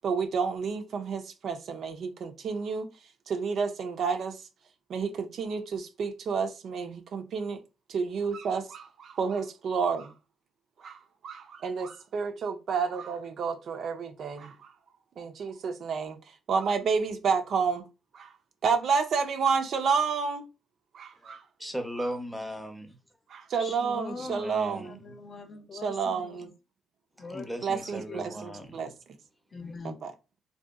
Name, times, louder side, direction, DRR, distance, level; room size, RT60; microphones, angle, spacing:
voice 1, 0.0-2.9 3.3-4.4 4.9-7.6 7.9-10.1 10.8-14.7 15.2-16.2 16.5-17.8 18.1-18.3 18.6-20.5 20.9-21.4 22.0-22.1 23.3-25.0 25.8-26.5 27.6-28.9 29.8-29.9, right 5 dB, 60° right, 0.4 m, -30 dB
voice 2, 21.2-23.0 24.3-25.1 27.2-28.9, equal, ahead, 0.6 m, -38 dB
voice 3, 23.6-26.5 27.2-28.4 29.5-30.0, left 3 dB, 45° left, 0.5 m, -42 dB
2.7 x 2.2 x 2.3 m
cardioid pair, 90°, 0 cm